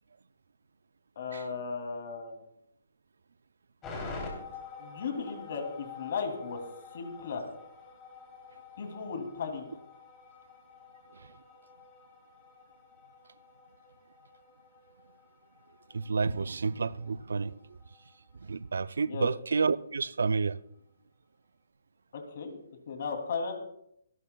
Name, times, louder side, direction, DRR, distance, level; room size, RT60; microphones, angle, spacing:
voice 1, 1.2-2.4 4.8-6.6 6.9-7.4 8.8-9.6 19.1-19.3 22.1-22.6 22.9-23.5, left 5 dB, 55° left, 2.7 m, -35 dB
sound 1, 3.8-18.2 18.4-18.5, left 4 dB, 15° left, 3.1 m, -48 dB
voice 2, 15.9-17.5 18.4-20.6, right 4 dB, 85° right, 0.4 m, -30 dB
25.0 x 12.0 x 2.3 m
hypercardioid pair, 165°, 0 cm